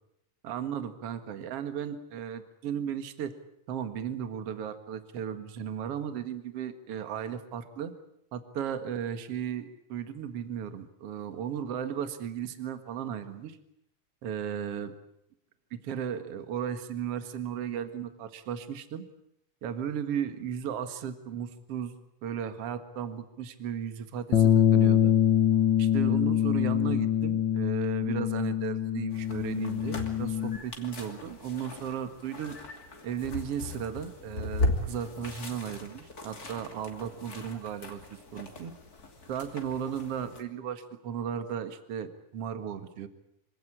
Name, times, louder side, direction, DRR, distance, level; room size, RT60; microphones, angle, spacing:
voice 1, 0.4-3.3 3.7-7.9 8.3-13.6 14.2-14.9 15.7-19.0 19.6-21.9 22.2-25.2 25.8-32.6 33.0-38.7 39.3-43.1, right 8 dB, 50° right, 9 dB, 2.4 m, -35 dB
Bass guitar, 24.3-30.6, left 10 dB, 60° left, 1.2 m, -24 dB
sound 1, 29.1-40.4, left 2 dB, 30° left, 2.9 m, -38 dB
25.5 x 17.5 x 9.9 m, 0.78 s
omnidirectional pair, 3.8 m